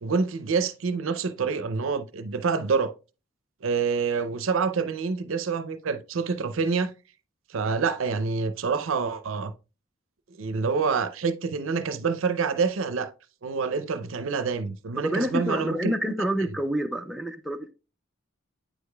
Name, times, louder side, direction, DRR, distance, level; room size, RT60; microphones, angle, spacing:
voice 1, 0.0-2.9 3.6-6.9 7.5-9.5 10.4-13.1 13.4-15.9, right 5 dB, 80° right, 0.5 m, -27 dB
voice 2, 15.0-17.7, equal, ahead, 0.4 m, -28 dB
8.9 x 4.8 x 2.2 m
head